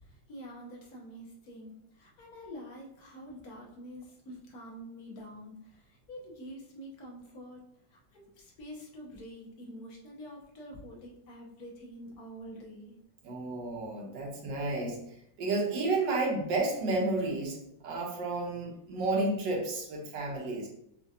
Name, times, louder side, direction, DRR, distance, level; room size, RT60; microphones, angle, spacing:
voice 1, 0.0-7.6 7.9-12.9, equal, 60° left, -2 dB, 1.4 m, -47 dB
voice 2, 13.2-15.0 15.4-17.6 17.8-20.7, right 2 dB, 85° right, 0 dB, 1.6 m, -31 dB
6.0 x 2.5 x 2.7 m, 0.75 s
omnidirectional pair, 1.9 m